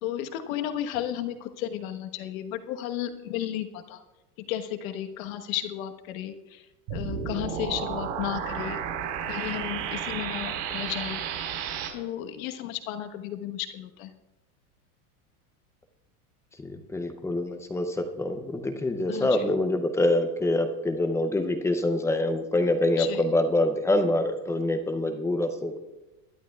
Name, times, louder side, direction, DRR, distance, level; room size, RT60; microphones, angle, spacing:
voice 1, 0.0-4.0 4.5-6.6 6.9-8.8 9.3-11.2 11.9-14.1 19.1-19.4 23.0-23.2, left 11 dB, 60° left, 7 dB, 1.3 m, -33 dB
sound 1, 6.9-11.9, right 8 dB, 50° right, 4.0 m, -32 dB
voice 2, 16.6-25.8, left 1 dB, 5° left, 6 dB, 0.5 m, -25 dB
21.5 x 11.0 x 2.3 m, 1.0 s
supercardioid pair, 150°, 46 cm